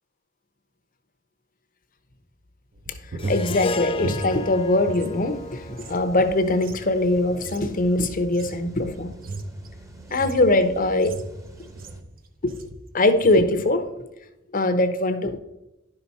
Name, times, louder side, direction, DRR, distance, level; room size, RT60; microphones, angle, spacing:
sound 1, 2.7-5.1 5.4-12.1 12.5-12.8 13.1-13.5, right 2 dB, 45° right, 0.8 m, -36 dB
Harp, 3.2-7.6, left 4 dB, 25° left, 0.4 m, -34 dB
sound 2, 3.2-12.0, right 2 dB, 15° right, 1.0 m, -46 dB
voice 1, 3.3-9.1 10.1-11.2 12.4-12.5 12.9-14.1 14.5-15.4, left 2 dB, 45° left, 10 dB, 0.8 m, -22 dB
11.0 x 5.8 x 4.1 m, 0.93 s
head